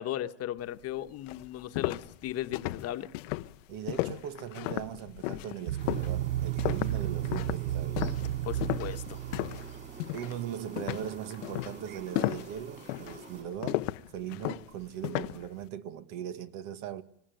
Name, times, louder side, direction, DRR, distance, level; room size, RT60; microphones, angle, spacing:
voice 1, 0.0-3.1 8.4-9.2, left 12 dB, 40° left, 1.2 m, -36 dB
sound 1, 0.8-0.9 1.3-9.7 10.0-10.4 10.8-15.5, left 19 dB, 75° left, 0.9 m, -34 dB
voice 2, 3.7-8.1 10.1-17.0, right 10 dB, 60° right, 1.7 m, -39 dB
sound 2, 5.7-10.3, right 13 dB, 75° right, 0.8 m, -33 dB
sound 3, 5.8-13.4, right 4 dB, 30° right, 5.8 m, -49 dB
25.5 x 15.5 x 9.2 m
supercardioid pair, 125°, 37 cm